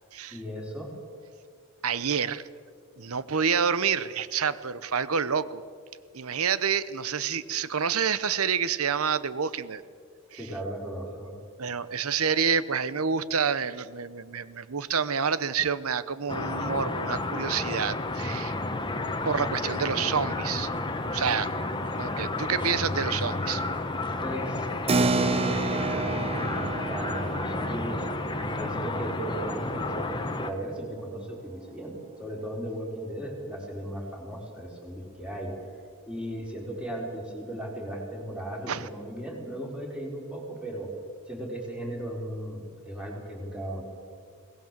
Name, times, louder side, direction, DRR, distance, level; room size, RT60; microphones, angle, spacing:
voice 1, 0.3-0.9 10.3-11.3 24.2-24.7 24.9-28.0 28.5-35.5 36.1-40.9 41.3-43.8, right 1 dB, 5° right, -1 dB, 4.4 m, -36 dB
voice 2, 1.8-2.4 3.0-5.6 6.1-9.8 10.3-10.5 11.6-18.6 19.2-20.7 21.1-21.5 21.9-23.6 38.7-38.9, right 6 dB, 70° right, 16 dB, 0.9 m, -28 dB
sound 1, 16.3-30.5, left 2 dB, 20° left, 1.2 m, -31 dB
Keyboard (musical), 24.9-30.9, right 3 dB, 25° right, 0.6 m, -31 dB
22.5 x 18.5 x 7.6 m, 2.1 s
head